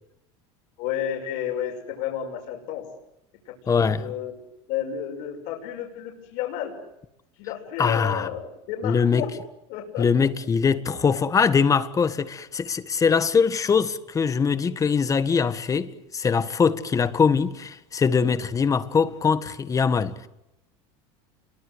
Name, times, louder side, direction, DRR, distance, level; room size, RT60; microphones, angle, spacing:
voice 1, 0.8-2.9 3.5-4.4 4.7-6.7 7.4-9.3 9.7-10.1, left 10 dB, 65° left, 6.3 m, -31 dB
voice 2, 3.7-4.1 7.8-8.3 8.8-9.3 10.0-20.3, left 6 dB, 20° left, 1.6 m, -22 dB
28.5 x 23.5 x 8.0 m
supercardioid pair, 130°, 15 cm